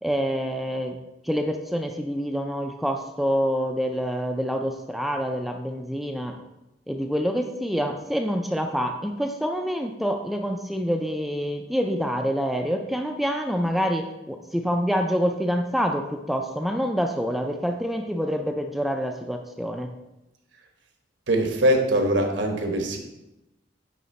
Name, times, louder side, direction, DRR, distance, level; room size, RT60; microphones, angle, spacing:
voice 1, 0.0-0.9 1.2-6.4 6.9-19.9, equal, ahead, 4 dB, 0.4 m, -26 dB
voice 2, 21.3-23.0, right 1 dB, 75° right, 3 dB, 1.1 m, -22 dB
9.5 x 3.4 x 4.2 m, 0.95 s
head